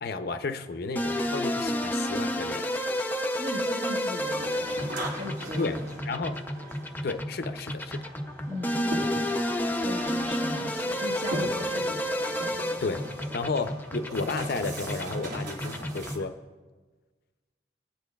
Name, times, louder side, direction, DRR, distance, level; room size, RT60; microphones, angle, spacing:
voice 1, 0.0-2.7 5.6-6.4 7.0-8.1 12.8-13.0 13.3-16.3, left 3 dB, 60° left, 9 dB, 0.5 m, -32 dB
sound 1, 1.0-16.3, equal, 10° left, 0.5 m, -31 dB
voice 2, 3.4-5.9 8.5-8.9 9.7-12.0, left 1 dB, 40° right, -1 dB, 1.7 m, -37 dB
sound 2, 4.2-16.2, equal, 90° right, 2.3 m, -40 dB
22.0 x 10.5 x 2.3 m, 1.4 s
head